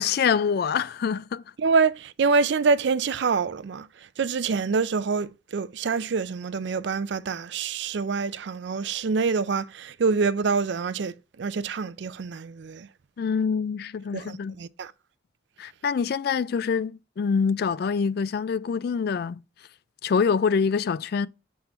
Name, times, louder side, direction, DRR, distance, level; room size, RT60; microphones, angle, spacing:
voice 1, 0.0-1.4 13.2-14.6 15.6-19.4 20.0-21.3, left 6 dB, 50° left, 0.3 m, -25 dB
voice 2, 1.6-12.9 14.1-14.9, right 5 dB, 60° right, 0.4 m, -26 dB
7.3 x 3.7 x 4.3 m
head